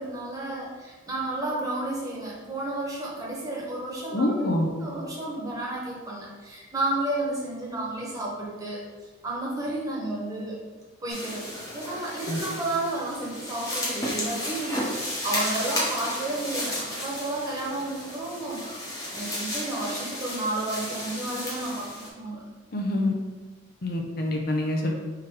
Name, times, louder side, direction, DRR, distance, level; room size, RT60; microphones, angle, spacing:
voice 1, 0.0-10.6 11.0-22.4, right 2 dB, 20° right, -4 dB, 1.1 m, -32 dB
voice 2, 4.1-4.7 12.3-12.4 22.7-23.1 23.8-24.9, left 1 dB, 55° left, 1 dB, 0.6 m, -26 dB
sound 1, 11.1-22.1, left 1 dB, 20° left, 1.1 m, -33 dB
3.8 x 2.9 x 4.7 m, 1.3 s
head